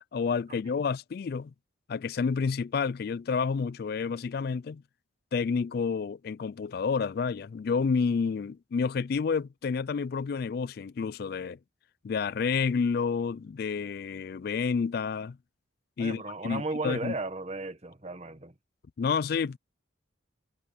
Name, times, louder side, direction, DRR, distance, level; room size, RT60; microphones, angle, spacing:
voice 1, 0.1-1.5 1.9-4.8 5.3-11.6 12.0-15.4 16.0-17.1 19.0-19.6, left 5 dB, 50° left, 0.3 m, -29 dB
voice 2, 16.0-18.5, right 2 dB, 30° right, 1.3 m, -35 dB
head